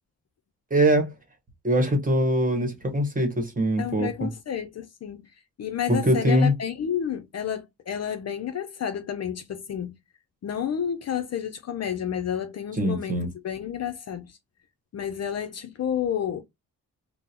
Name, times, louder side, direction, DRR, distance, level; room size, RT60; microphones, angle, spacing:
voice 1, 0.7-1.1 1.6-4.3 5.9-6.5 12.8-13.3, right 1 dB, 25° right, 1.1 m, -22 dB
voice 2, 3.8-5.3 5.6-10.0 10.4-14.4 14.9-16.4, left 8 dB, 50° left, 0.5 m, -30 dB
3.8 x 2.0 x 2.8 m
cardioid pair, 105°, 34 cm